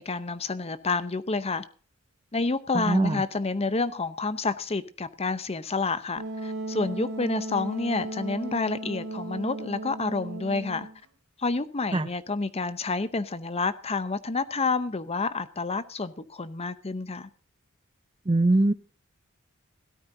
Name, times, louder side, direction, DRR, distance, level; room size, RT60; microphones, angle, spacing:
voice 1, 0.0-1.6 2.3-10.9 11.4-17.3, left 3 dB, 30° left, 0.8 m, -29 dB
voice 2, 2.7-3.2 11.9-12.1 18.3-18.7, right 2 dB, 25° right, 0.6 m, -22 dB
Wind instrument woodwind instrument, 6.2-11.0, right 2 dB, 80° right, 2.3 m, -36 dB
17.0 x 13.0 x 2.7 m
head